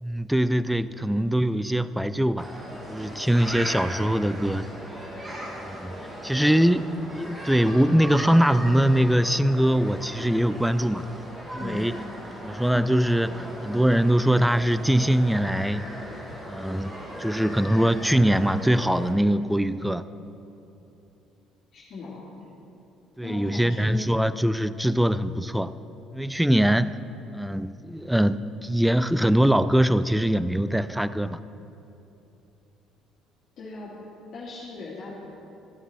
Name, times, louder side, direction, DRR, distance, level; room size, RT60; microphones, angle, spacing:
voice 1, 0.0-2.5 2.9-4.7 5.6-5.9 6.2-11.1 11.5-12.0 12.4-15.8 16.5-16.9 17.2-20.0 23.2-25.7 26.1-27.0 27.3-31.4, equal, 5° right, 14 dB, 0.4 m, -22 dB
sound 1, 2.4-19.1, equal, 20° right, 2.0 m, -38 dB
voice 2, 11.6-11.9 21.7-22.2 23.2-24.0 33.6-34.0 34.3-35.1, left 3 dB, 60° left, -6 dB, 2.1 m, -38 dB
14.5 x 8.0 x 4.2 m, 2.9 s
supercardioid pair, 85°, 0 cm